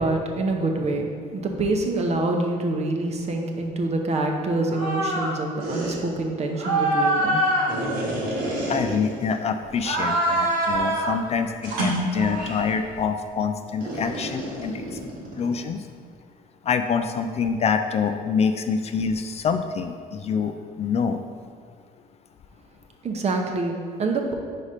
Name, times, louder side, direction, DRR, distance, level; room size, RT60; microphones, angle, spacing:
voice 1, 0.0-7.4 23.0-24.3, right 2 dB, 40° right, 3 dB, 0.8 m, -26 dB
sound 1, 4.7-5.3 5.6-6.0 6.6-9.4 9.8-11.2 11.6-12.7 13.8-15.6, right 1 dB, 80° right, 1.6 m, -25 dB
voice 2, 8.7-15.0 15.4-15.8 16.6-21.2, left 6 dB, 40° left, 7 dB, 0.4 m, -26 dB
4.9 x 4.3 x 5.0 m, 2.1 s
cardioid pair, 110°, 17 cm